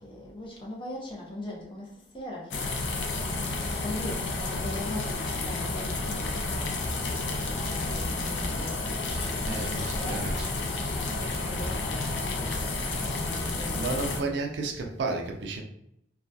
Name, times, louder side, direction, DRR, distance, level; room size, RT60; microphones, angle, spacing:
voice 1, 0.0-10.6 11.1-14.6, left 1 dB, 25° left, 0.6 m, -41 dB
sound 1, 2.5-14.2, left 2 dB, 75° left, 0.4 m, -31 dB
voice 2, 9.4-10.6 13.7-15.6, right 3 dB, 65° right, 0.4 m, -32 dB
2.6 x 2.3 x 2.2 m
head